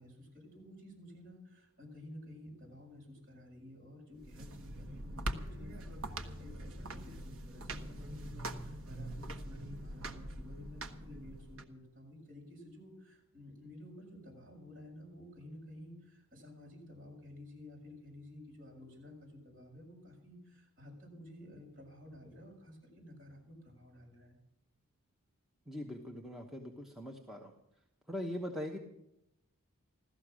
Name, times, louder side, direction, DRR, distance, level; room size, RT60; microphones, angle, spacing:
voice 1, 0.0-24.4, left 1 dB, 40° right, -3 dB, 6.6 m, -52 dB
sound 1, 4.2-11.6, right 1 dB, 65° right, 1.2 m, -43 dB
voice 2, 25.7-27.5 28.1-28.8, left 1 dB, ahead, 0 dB, 1.0 m, -41 dB
15.5 x 13.5 x 6.3 m, 0.84 s
head